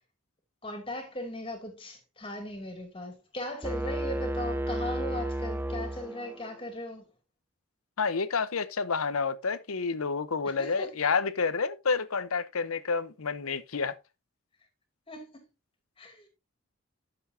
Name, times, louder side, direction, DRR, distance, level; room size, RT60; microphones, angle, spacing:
voice 1, 0.6-7.1 10.4-10.9 15.1-15.5 16.0-16.3, left 1 dB, 25° left, 2.5 m, -38 dB
sound 1, 3.6-6.6, right 1 dB, 10° right, 0.4 m, -32 dB
voice 2, 8.0-13.9, left 5 dB, 90° left, 0.8 m, -29 dB
10.5 x 7.0 x 2.7 m
head